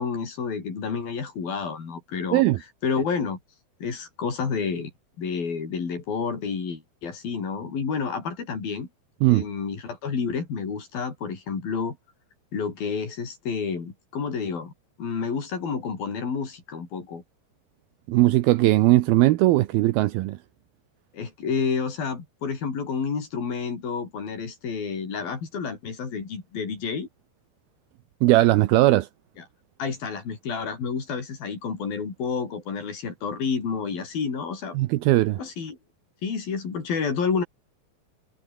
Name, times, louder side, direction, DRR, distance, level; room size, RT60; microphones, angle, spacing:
voice 1, 0.0-2.4 2.8-3.4 3.8-4.9 5.2-8.9 9.3-12.0 12.5-14.7 15.0-17.2 21.1-27.1 29.8-34.8 35.4-35.8 36.2-37.4, left 5 dB, 65° left, 6.6 m, -29 dB
voice 2, 18.1-20.4 28.2-29.1 34.7-35.4, right 17 dB, 75° right, 2.6 m, -19 dB
omnidirectional pair, 4.5 m